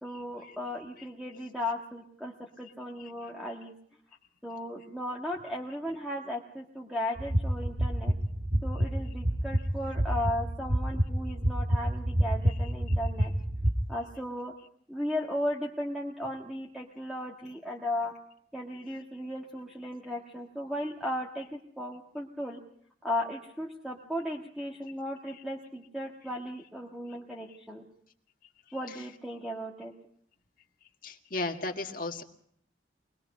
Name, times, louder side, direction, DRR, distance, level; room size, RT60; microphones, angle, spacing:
voice 1, 0.0-3.7 4.4-8.1 8.6-13.3 13.9-14.5 14.9-18.1 18.5-22.6 23.0-27.8 28.7-29.9, left 1 dB, ahead, -2 dB, 1.5 m, -36 dB
sound 1, 7.2-13.7, equal, 60° right, 2.3 m, -28 dB
voice 2, 31.0-32.2, left 2 dB, 45° left, 4 dB, 1.8 m, -34 dB
24.0 x 20.0 x 5.4 m, 0.66 s
head